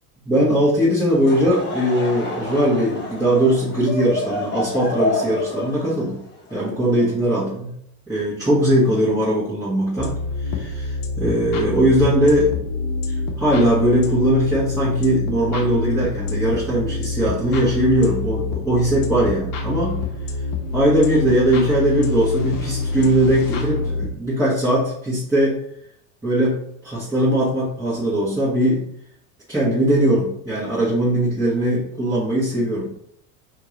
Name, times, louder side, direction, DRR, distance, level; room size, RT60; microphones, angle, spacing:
voice 1, 0.2-6.2 6.5-7.7 8.1-10.1 10.4-12.5 13.1-20.0 20.7-25.6 26.2-26.6 26.8-28.8 29.5-32.9, right 1 dB, 5° right, -11 dB, 1.4 m, -20 dB
Laughter / Crowd, 1.1-7.5, left 2 dB, 25° left, 1.1 m, -29 dB
sound 1, 10.0-24.2, left 3 dB, 45° left, 0.9 m, -26 dB
2.9 x 2.8 x 3.8 m, 0.69 s
hypercardioid pair, 80°, 45 cm